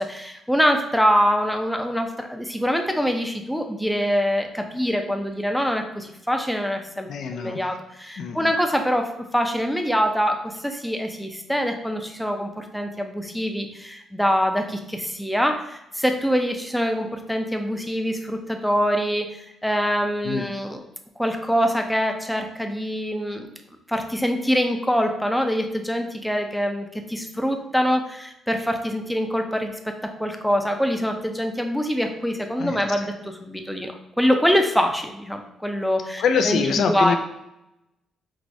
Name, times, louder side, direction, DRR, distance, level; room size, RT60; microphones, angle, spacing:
voice 1, 0.0-20.8 21.2-23.5 23.9-36.6 36.9-37.2, equal, ahead, 4 dB, 0.5 m, -24 dB
voice 2, 7.1-7.6 8.2-8.5 20.2-20.5 32.6-33.0 36.2-37.2, left 6 dB, 65° left, 6 dB, 0.3 m, -24 dB
4.6 x 2.0 x 2.6 m, 0.87 s
cardioid pair, 90°, 0 cm